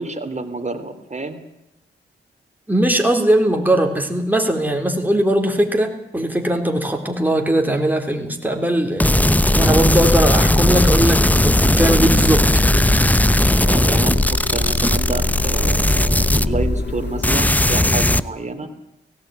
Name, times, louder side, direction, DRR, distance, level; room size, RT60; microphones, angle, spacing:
voice 1, 0.0-1.4 13.6-18.7, right 3 dB, 35° right, 7 dB, 3.1 m, -28 dB
voice 2, 2.7-12.4, right 1 dB, 10° right, 3 dB, 3.7 m, -20 dB
sound 1, 9.0-17.0 17.2-18.2, left 1 dB, 10° left, 0.7 m, -17 dB
sound 2, 9.4-18.2, left 3 dB, 60° left, 2.1 m, -29 dB
17.5 x 16.0 x 9.3 m, 0.85 s
cardioid pair, 45°, 20 cm